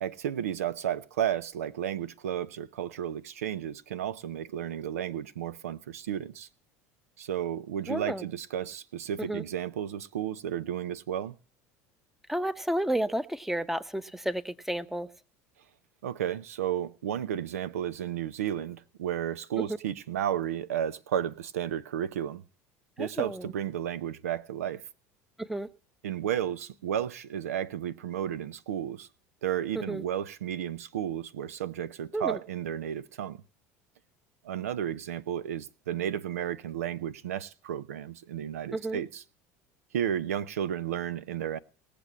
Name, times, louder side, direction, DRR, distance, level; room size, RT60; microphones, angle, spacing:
voice 1, 0.0-6.5 7.2-11.3 16.0-22.4 23.0-24.8 26.0-29.1 29.4-33.4 34.4-39.2 39.9-41.6, right 10 dB, 90° right, 0.6 m, -33 dB
voice 2, 7.9-8.2 9.2-9.4 12.3-15.1 19.6-19.8 23.0-23.5 25.4-25.7 29.9-30.0 32.1-32.4 38.7-39.0, right 1 dB, 5° right, 0.8 m, -31 dB
18.5 x 6.8 x 7.1 m
hypercardioid pair, 85°, 8 cm